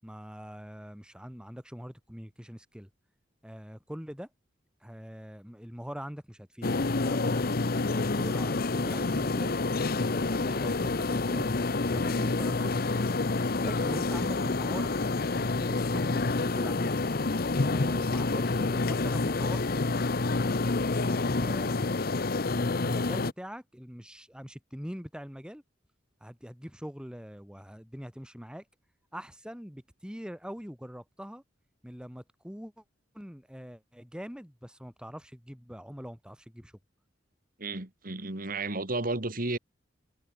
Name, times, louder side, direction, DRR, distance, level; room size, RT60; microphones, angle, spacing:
voice 1, 0.0-2.9 3.4-4.3 4.8-7.4 7.7-9.6 10.0-13.1 13.6-17.0 17.6-19.8 21.0-21.8 22.5-25.6 26.2-28.6 29.1-31.4 31.8-32.8 33.1-36.7, equal, 5° right, 6.8 m, -43 dB
sound 1, 6.6-23.3, left 3 dB, 55° left, 0.9 m, -28 dB
voice 2, 37.6-39.6, right 2 dB, 50° right, 2.5 m, -32 dB
head